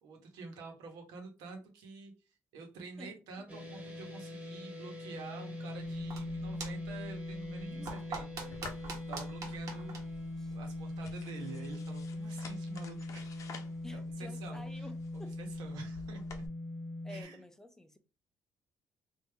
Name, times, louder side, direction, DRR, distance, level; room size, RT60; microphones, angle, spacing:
voice 1, 0.0-2.1 2.5-9.9 10.5-13.4 13.9-14.9 15.1-16.2 17.1-17.4, right 4 dB, 90° right, 1.1 m, -48 dB
sound 1, 3.5-17.2, left 2 dB, 20° right, 1.4 m, -41 dB
sound 2, 5.8-11.1, right 3 dB, 60° right, 1.3 m, -46 dB
sound 3, 8.5-16.5, left 5 dB, 50° left, 0.6 m, -53 dB
voice 2, 13.8-15.4 17.0-18.0, left 1 dB, 5° left, 0.5 m, -50 dB
3.3 x 2.6 x 3.4 m
cardioid pair, 120°, 7 cm